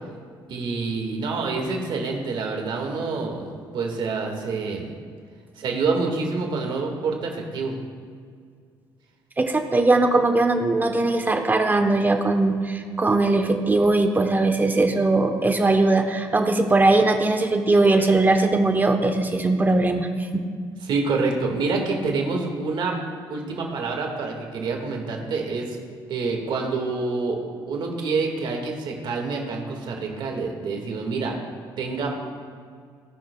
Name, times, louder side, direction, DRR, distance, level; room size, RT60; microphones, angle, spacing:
voice 1, 0.5-4.9 5.6-7.7 20.9-23.0 23.3-25.8 26.1-31.3 31.8-32.2, right 4 dB, 65° right, 1 dB, 1.8 m, -27 dB
voice 2, 9.4-20.4, right 2 dB, 20° right, 5 dB, 0.9 m, -20 dB
17.5 x 6.3 x 2.3 m, 2.1 s
cardioid pair, 90°, 9 cm